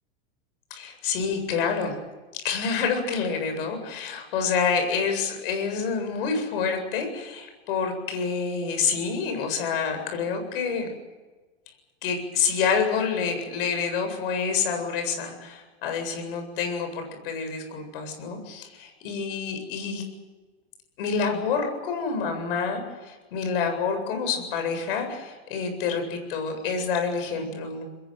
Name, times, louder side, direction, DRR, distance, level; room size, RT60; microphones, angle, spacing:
voice 1, 0.7-1.9 2.4-10.9 12.0-20.0 21.0-27.8, left 5 dB, 60° left, 5 dB, 7.8 m, -28 dB
25.0 x 21.5 x 7.7 m, 1.3 s
supercardioid pair, 170°, 31 cm